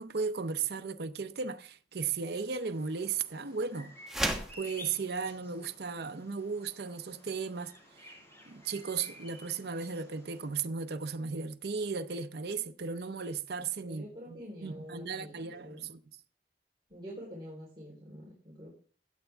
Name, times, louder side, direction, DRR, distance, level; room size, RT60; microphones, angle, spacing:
voice 1, 0.0-4.0 4.6-8.1 8.5-16.0, right 5 dB, 60° right, 0.7 m, -36 dB
Bird vocalization bird call bird song, 2.3-10.5, left 1 dB, 15° left, 4.7 m, -53 dB
sound 1, 4.1-4.6, right 1 dB, ahead, 1.2 m, -31 dB
voice 2, 13.8-15.9 16.9-18.7, equal, 25° right, 3.8 m, -46 dB
16.0 x 8.1 x 3.5 m
head